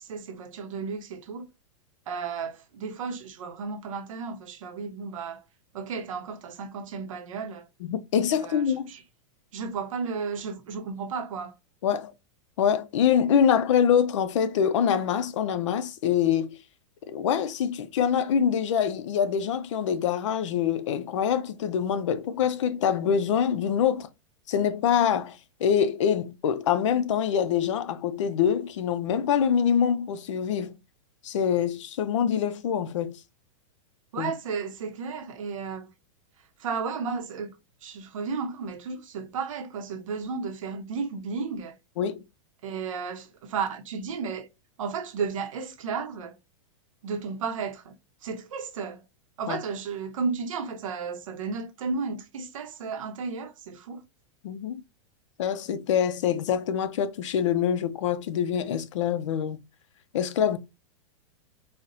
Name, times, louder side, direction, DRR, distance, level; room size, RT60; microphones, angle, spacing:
voice 1, 0.0-1.5 2.1-5.4 5.7-7.7 8.4-9.0 9.5-11.5 34.1-35.9 36.6-37.5 37.8-41.8 42.6-44.5 44.8-46.3 47.0-48.0 48.2-49.0 49.4-54.0, right 5 dB, 85° right, 0.7 m, -33 dB
voice 2, 7.8-8.9 11.8-12.1 12.6-16.6 17.1-24.1 24.5-30.7 31.2-33.2 34.2-34.3 42.0-42.2 49.5-49.6 54.4-54.8 55.4-59.6 60.1-60.6, left 8 dB, 70° left, 0.5 m, -25 dB
4.1 x 2.1 x 2.6 m
supercardioid pair, 160°, 16 cm